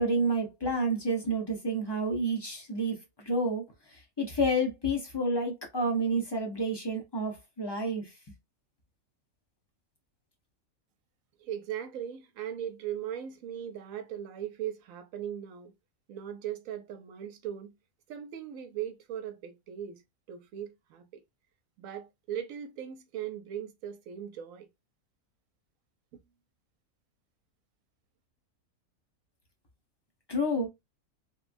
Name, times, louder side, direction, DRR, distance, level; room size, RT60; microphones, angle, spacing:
voice 1, 0.0-3.6 3.9-8.1 30.3-30.7, right 1 dB, 30° left, 0.4 m, -29 dB
voice 2, 11.4-15.7 16.1-17.7 18.1-20.0 20.3-21.2 21.8-24.7, right 10 dB, 70° right, 0.9 m, -39 dB
3.0 x 2.2 x 2.5 m
omnidirectional pair, 1.6 m